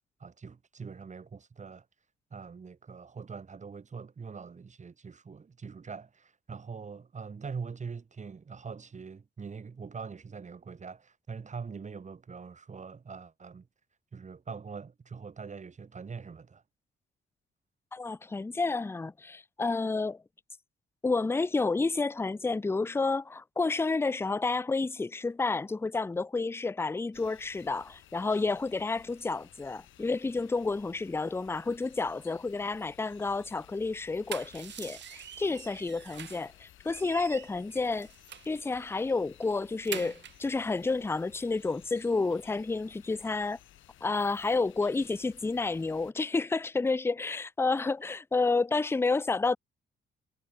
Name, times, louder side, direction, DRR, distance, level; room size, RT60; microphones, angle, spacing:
voice 1, 0.2-1.9 2.3-13.7 14.1-16.6, right 5 dB, 35° right, 7.0 m, -43 dB
voice 2, 17.9-20.2 21.0-38.1 38.5-43.6 44.0-49.6, left 3 dB, 10° left, 0.5 m, -30 dB
sound 1, 27.1-46.1, left 13 dB, 80° left, 6.1 m, -57 dB
sound 2, 34.0-36.5 36.9-38.6 39.0-39.1 39.4-40.5, right 10 dB, 65° right, 1.7 m, -44 dB
cardioid pair, 90°, 20 cm